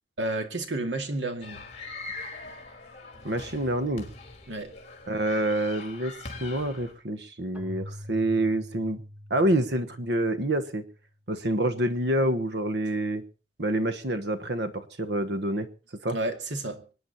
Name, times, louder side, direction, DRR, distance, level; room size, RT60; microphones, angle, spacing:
voice 1, 0.2-1.6 4.5-4.7 16.1-16.8, right 2 dB, 80° right, 2.3 m, -31 dB
sound 1, 1.4-6.9, left 3 dB, 35° left, 3.8 m, -42 dB
voice 2, 3.2-4.1 5.1-6.1 6.4-9.0 9.3-10.8 11.3-13.2 13.6-15.7 16.0-16.2, right 1 dB, 60° right, 1.3 m, -27 dB
Keyboard (musical), 7.6-11.1, left 1 dB, 5° right, 1.6 m, -44 dB
25.0 x 10.0 x 4.2 m
head